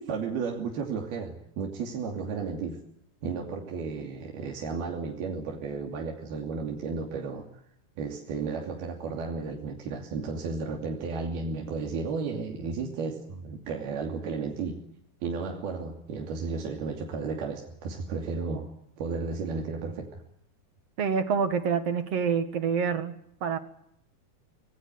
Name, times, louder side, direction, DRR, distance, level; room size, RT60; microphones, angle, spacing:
voice 1, 0.1-2.8 3.2-7.4 8.0-14.8 15.2-18.7 19.0-20.2, right 4 dB, 80° right, 1 dB, 4.8 m, -33 dB
voice 2, 21.0-23.1 23.4-23.6, right 6 dB, 50° right, 10 dB, 2.5 m, -26 dB
25.5 x 21.0 x 9.7 m, 0.74 s
omnidirectional pair, 4.4 m